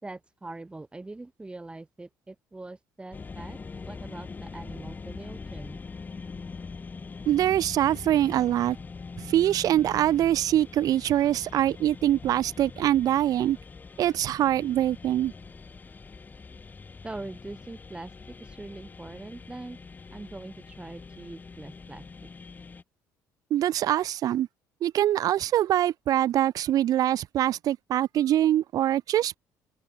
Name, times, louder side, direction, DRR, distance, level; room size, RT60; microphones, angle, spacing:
voice 1, 0.0-3.6 3.9-5.8 17.0-18.1 18.4-19.8 20.1-22.0, right 2 dB, 15° right, 5.3 m, -42 dB
sound 1, 3.1-22.8, left 4 dB, 25° left, 3.0 m, -43 dB
voice 2, 7.2-8.8 9.2-13.6 14.0-15.3 23.5-24.5 24.8-29.4, right 12 dB, 60° right, 1.3 m, -24 dB
cardioid pair, 105°, 7 cm